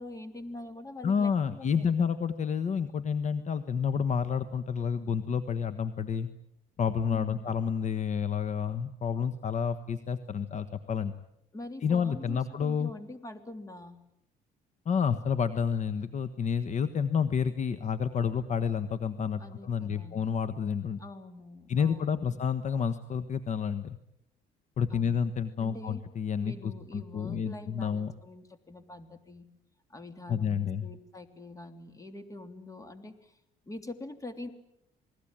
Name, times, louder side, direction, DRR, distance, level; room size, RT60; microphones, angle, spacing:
voice 1, 0.0-1.9 7.1-7.5 11.5-14.0 19.4-20.2 21.0-22.3 24.9-25.3 25.6-26.0 26.4-29.5 29.9-33.4 33.6-34.5, left 2 dB, 20° left, 8 dB, 3.1 m, -44 dB
voice 2, 1.0-6.3 6.8-11.1 11.8-12.9 14.8-21.0 21.7-24.0 24.8-28.1 30.3-30.9, left 7 dB, 45° left, 11 dB, 1.4 m, -29 dB
28.0 x 20.5 x 8.9 m, 0.80 s
cardioid pair, 110°, 17 cm